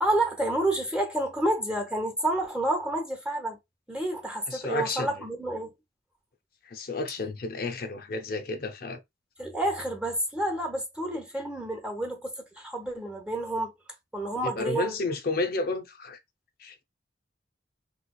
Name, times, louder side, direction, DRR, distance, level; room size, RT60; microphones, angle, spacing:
voice 1, 0.0-3.6 3.9-5.7 9.4-13.7 14.1-15.0, right 1 dB, 5° right, 0.8 m, -29 dB
voice 2, 4.5-5.2 6.7-9.0 14.4-16.2 16.6-16.8, left 3 dB, 55° left, 0.6 m, -31 dB
3.3 x 3.1 x 2.3 m
head